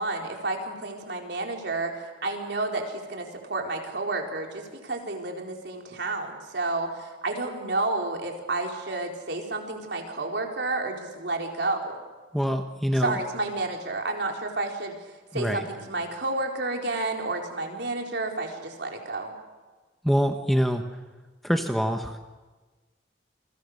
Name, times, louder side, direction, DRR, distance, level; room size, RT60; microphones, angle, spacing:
voice 1, 0.0-12.0 13.0-14.9 15.3-19.4, right 2 dB, 65° right, 2 dB, 4.4 m, -30 dB
voice 2, 12.3-13.2 15.3-15.7 20.0-20.8 21.4-22.2, equal, ahead, 5 dB, 1.2 m, -25 dB
29.0 x 23.0 x 6.6 m, 1.3 s
head